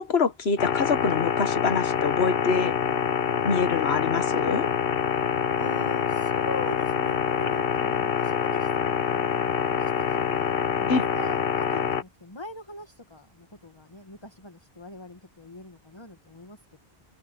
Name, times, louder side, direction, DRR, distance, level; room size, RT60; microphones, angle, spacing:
voice 1, 0.0-2.7 3.4-4.7 10.9-11.0, left 4 dB, 85° left, 1.6 m, -25 dB
sound 1, 0.6-12.0, left 7 dB, 65° left, 1.1 m, -26 dB
voice 2, 5.3-16.8, left 2 dB, 25° left, 2.1 m, -41 dB
open air
omnidirectional pair, 1.0 m